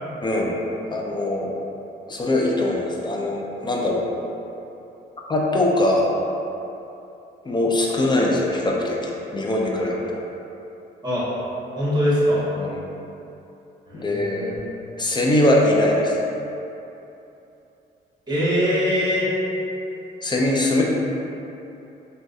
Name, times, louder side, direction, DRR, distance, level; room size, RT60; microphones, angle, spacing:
voice 1, 0.2-0.5 0.9-1.5 2.1-4.1 5.3-6.1 7.4-10.0 12.6-12.8 13.9-14.5 15.0-16.2 20.2-20.8, left 1 dB, 20° left, -2 dB, 0.4 m, -21 dB
voice 2, 11.8-12.4 13.9-14.6 18.3-19.3, equal, 20° right, -9 dB, 1.4 m, -22 dB
4.5 x 2.2 x 2.6 m, 2.9 s
cardioid pair, 90°, 20 cm